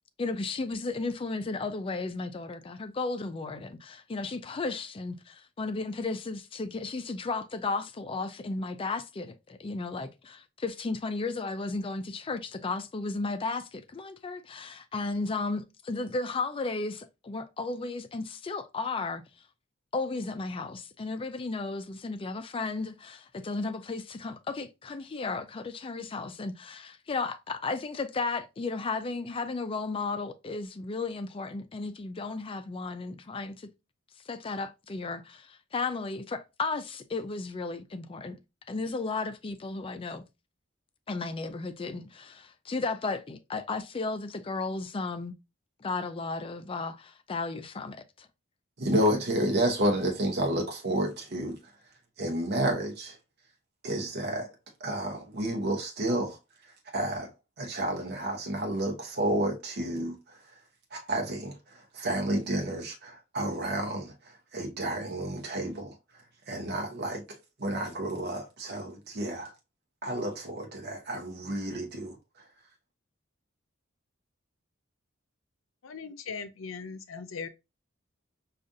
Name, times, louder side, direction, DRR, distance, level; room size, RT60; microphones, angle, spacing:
voice 1, 0.2-19.2 19.9-33.7 34.3-38.4 38.7-40.2 41.1-45.3 45.8-48.3, left 3 dB, 25° left, 0.4 m, -34 dB
voice 2, 48.8-51.6 52.2-53.2 53.8-54.5 54.8-56.4 56.9-57.3 57.6-60.4 60.9-65.9 66.5-69.5 70.0-72.2, right 1 dB, 55° right, 0.8 m, -30 dB
voice 3, 75.8-77.5, left 5 dB, 80° left, 0.5 m, -39 dB
5.0 x 2.4 x 2.6 m
head